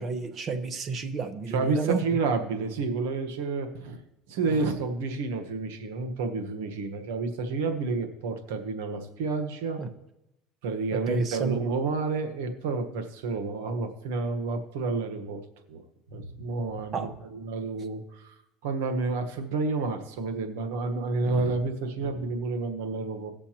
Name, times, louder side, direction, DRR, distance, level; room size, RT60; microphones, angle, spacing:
voice 1, 0.0-2.0 9.8-9.9 10.9-11.6 16.9-17.1, right 4 dB, 40° right, 8 dB, 1.1 m, -30 dB
voice 2, 1.5-4.0 4.3-9.8 10.6-15.4 15.7-15.8 16.1-18.3 18.6-23.3, right 3 dB, 85° right, 6 dB, 1.2 m, -30 dB
17.5 x 6.8 x 2.9 m, 0.88 s
supercardioid pair, 100°, 0 cm